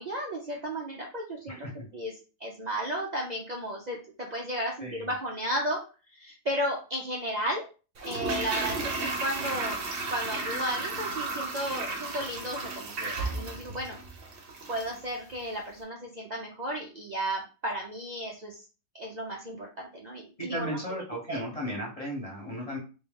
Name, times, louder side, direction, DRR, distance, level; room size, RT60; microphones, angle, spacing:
voice 1, 0.0-1.7 1.9-5.8 6.1-7.6 8.0-9.8 10.1-14.0 14.7-18.6 18.9-21.0 21.3-21.4, equal, 65° right, -2 dB, 0.4 m, -34 dB
Toilet flush, 8.0-15.0 15.3-15.4, right 3 dB, 45° right, 0.8 m, -34 dB
voice 2, 20.4-22.8, equal, 25° left, -2 dB, 1.2 m, -35 dB
3.2 x 3.0 x 3.7 m, 0.34 s
omnidirectional pair, 1.8 m